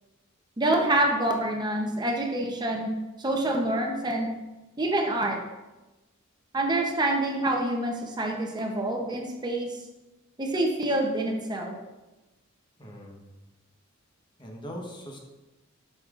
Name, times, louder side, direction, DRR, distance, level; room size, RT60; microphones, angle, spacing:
voice 1, 0.6-2.9 3.2-4.3 4.8-5.4 6.5-9.8 10.4-11.7, right 1 dB, 20° right, 1 dB, 0.7 m, -26 dB
voice 2, 12.8-13.2 14.4-15.2, equal, 25° left, 0 dB, 1.1 m, -40 dB
8.4 x 6.5 x 2.5 m, 1.1 s
head